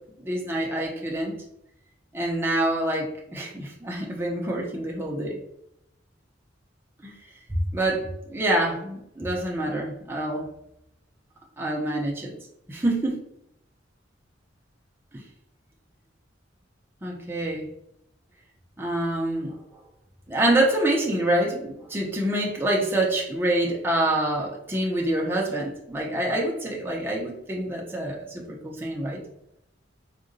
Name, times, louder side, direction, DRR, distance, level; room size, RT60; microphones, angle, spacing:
voice 1, 0.2-1.4 2.1-5.4 7.0-7.1 7.7-10.5 11.6-12.3 12.7-13.2 17.0-17.7 18.8-19.6 20.3-29.2, right 1 dB, 10° right, -2 dB, 0.4 m, -26 dB
3.6 x 2.0 x 2.5 m, 0.79 s
head